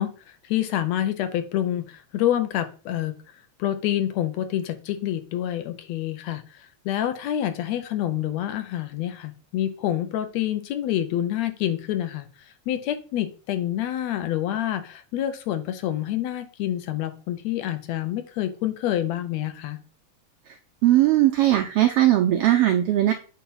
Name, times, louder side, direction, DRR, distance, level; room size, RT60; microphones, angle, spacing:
voice 1, 0.0-3.2 3.6-12.3 12.7-19.8, left 12 dB, 75° left, 9 dB, 1.8 m, -27 dB
voice 2, 20.8-23.1, right 13 dB, 85° right, 4 dB, 1.3 m, -19 dB
8.5 x 2.9 x 5.4 m, 0.36 s
omnidirectional pair, 3.3 m